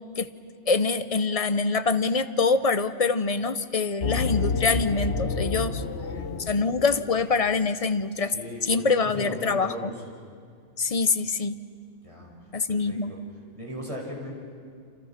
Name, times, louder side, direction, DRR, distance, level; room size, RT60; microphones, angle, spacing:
voice 1, 0.7-5.8 6.5-8.3 8.6-9.9 10.8-11.6 12.5-13.1, left 4 dB, 35° left, 12 dB, 0.7 m, -25 dB
sound 1, 4.0-7.4, left 4 dB, 55° left, 1.4 m, -29 dB
voice 2, 8.3-9.9 12.0-12.3 12.9-13.2 13.5-14.3, equal, 25° right, -1 dB, 5.6 m, -37 dB
29.0 x 27.0 x 5.8 m, 2.2 s
omnidirectional pair, 1.4 m